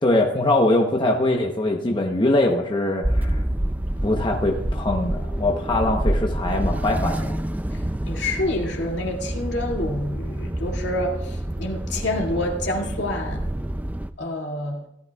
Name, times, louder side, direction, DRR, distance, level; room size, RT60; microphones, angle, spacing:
voice 1, 0.0-3.4 4.0-7.4, left 2 dB, 25° left, 0 dB, 0.9 m, -22 dB
sound 1, 3.0-14.1, right 1 dB, 10° right, 0.4 m, -27 dB
voice 2, 7.7-13.5 14.2-14.8, left 1 dB, 65° left, 0 dB, 2.3 m, -28 dB
16.5 x 12.0 x 2.4 m, 0.80 s
head